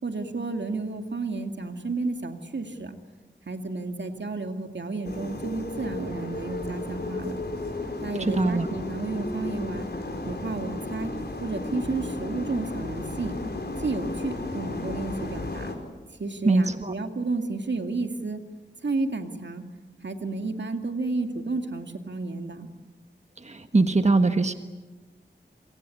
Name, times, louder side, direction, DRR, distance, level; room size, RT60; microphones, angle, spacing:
voice 1, 0.0-3.0 3.5-7.4 8.0-9.9 10.3-11.1 11.4-13.3 13.8-15.7 16.2-18.4 18.8-19.6 20.0-22.7, right 3 dB, 75° right, 6 dB, 2.4 m, -31 dB
sound 1, 5.0-15.8, left 2 dB, 60° left, 4.9 m, -34 dB
voice 2, 8.2-8.7 16.4-16.9 23.4-24.5, right 3 dB, 40° right, 8 dB, 1.4 m, -22 dB
27.5 x 24.5 x 8.5 m, 1.2 s
wide cardioid pair, 55°, 19 cm